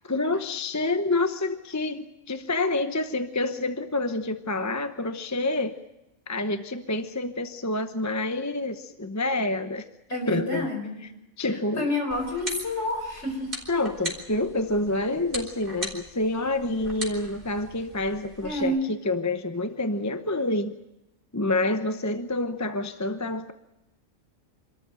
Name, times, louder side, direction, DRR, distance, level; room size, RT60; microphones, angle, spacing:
voice 1, 0.1-5.8 6.3-9.8 10.3-10.7 11.4-11.9 13.7-20.7 21.3-23.5, left 2 dB, 15° left, 8 dB, 0.8 m, -28 dB
voice 2, 10.1-11.0 11.5-13.5 18.4-18.8, left 1 dB, 55° left, 3 dB, 5.0 m, -29 dB
sound 1, 12.1-18.6, right 1 dB, 40° right, 3.9 m, -39 dB
25.5 x 13.5 x 8.9 m, 0.94 s
omnidirectional pair, 1.4 m